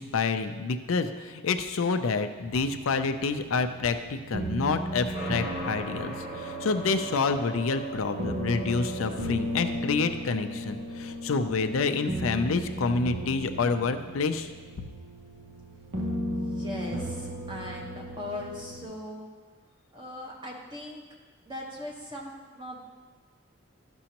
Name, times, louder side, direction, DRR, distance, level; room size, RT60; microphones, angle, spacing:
voice 1, 0.0-14.5, left 4 dB, 90° left, 8 dB, 0.5 m, -28 dB
sound 1, 2.4-18.8, equal, 65° right, 1.0 m, -36 dB
sound 2, 5.1-14.8, right 2 dB, 90° right, 2.7 m, -41 dB
voice 2, 16.3-19.3 19.9-21.0 21.4-22.9, left 1 dB, 25° right, -2 dB, 1.2 m, -39 dB
12.5 x 6.1 x 2.9 m, 1.4 s
head